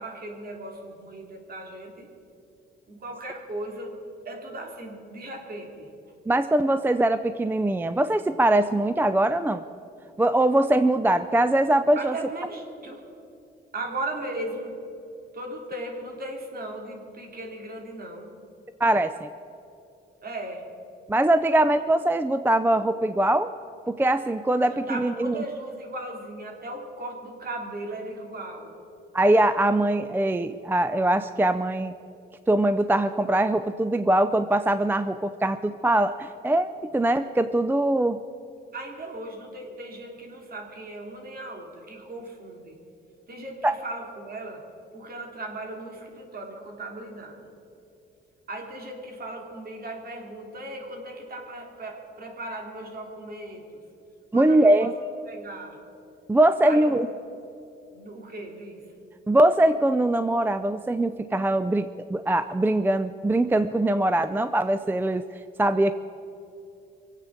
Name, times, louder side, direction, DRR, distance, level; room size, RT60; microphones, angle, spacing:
voice 1, 0.0-2.1 2.9-3.9 4.2-5.9 11.9-13.0 13.7-14.9 15.3-18.3 20.2-20.6 24.7-28.7 38.7-42.8 43.3-44.6 44.9-47.5 48.5-53.6 54.3-54.9 55.3-55.8 56.6-57.1 57.9-58.8, right 1 dB, 50° right, 1 dB, 3.3 m, -37 dB
voice 2, 6.3-9.6 10.2-12.1 18.8-19.3 21.1-23.5 23.9-25.4 29.1-31.9 32.5-38.2 43.6-43.7 54.3-54.9 56.3-57.1 59.3-65.2 65.6-65.9, right 1 dB, 10° right, 12 dB, 0.4 m, -22 dB
23.5 x 8.3 x 7.3 m, 2.8 s
cardioid pair, 90°, 20 cm